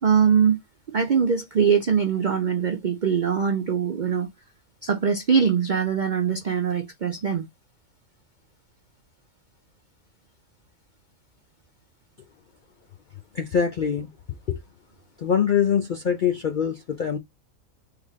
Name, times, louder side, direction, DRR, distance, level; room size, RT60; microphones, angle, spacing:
voice 1, 0.0-0.6 0.9-4.3 4.8-7.5, right 7 dB, 65° right, 0.4 m, -22 dB
voice 2, 13.3-14.1 14.5-14.6 15.2-17.2, left 7 dB, 65° left, 0.5 m, -23 dB
3.8 x 3.3 x 3.0 m
omnidirectional pair, 1.5 m